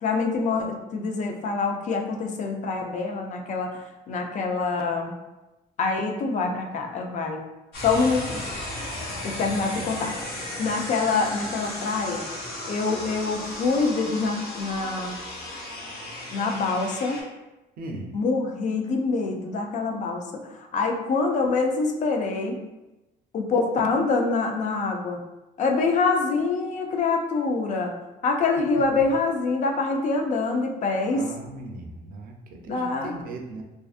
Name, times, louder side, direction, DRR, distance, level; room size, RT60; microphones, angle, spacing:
voice 1, 0.0-5.1 5.8-7.4 7.8-8.4 9.2-10.1 10.6-12.3 12.7-15.2 16.3-17.2 18.1-22.6 23.3-25.2 25.6-27.9 28.2-31.3 32.7-33.1, left 4 dB, 45° left, 3 dB, 0.4 m, -25 dB
sound 1, 7.7-17.2, left 1 dB, 70° left, 1.0 m, -35 dB
voice 2, 9.4-9.9 17.8-18.1 28.7-28.8 31.1-33.6, right 2 dB, 60° right, 2 dB, 0.5 m, -38 dB
2.5 x 2.4 x 2.4 m, 1.0 s
cardioid pair, 110°, 17 cm